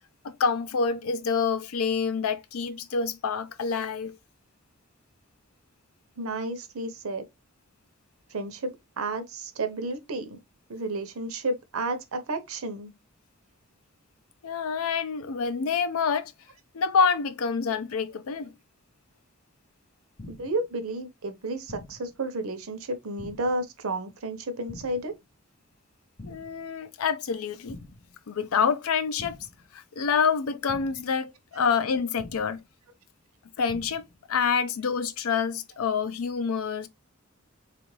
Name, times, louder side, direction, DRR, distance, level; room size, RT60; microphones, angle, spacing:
voice 1, 0.2-4.2 14.4-16.3 16.7-18.5 26.3-27.8 28.3-29.4 29.7-32.6 33.6-34.0 34.3-36.9, left 6 dB, 85° left, 0.5 m, -27 dB
voice 2, 6.2-7.2 8.3-10.4 10.7-12.9 20.3-25.1, right 2 dB, 85° right, 0.7 m, -32 dB
sound 1, 20.2-20.7 21.7-22.2 23.2-23.7 24.7-25.2 26.2-26.7 27.7-28.2 29.2-29.7 30.7-31.2 32.2-32.7 33.7-34.2, left 2 dB, 25° left, 0.5 m, -45 dB
3.5 x 2.4 x 3.1 m
head